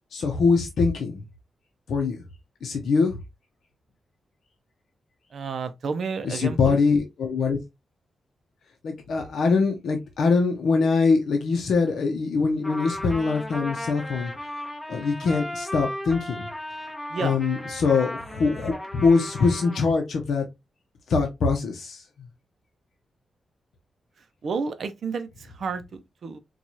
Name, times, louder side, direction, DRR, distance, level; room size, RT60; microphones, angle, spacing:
voice 1, 0.1-1.2 1.9-2.2 2.6-3.2 6.2-7.6 8.8-14.3 14.9-16.5 17.2-20.5 21.1-22.0, left 4 dB, 70° left, 0.6 m, -23 dB
voice 2, 5.3-6.8 17.1-17.4 24.4-26.4, right 5 dB, 55° right, 0.5 m, -31 dB
Trumpet, 12.6-19.8, left 1 dB, 15° left, 1.1 m, -35 dB
4.5 x 2.3 x 2.7 m
wide cardioid pair, 170°, 0 cm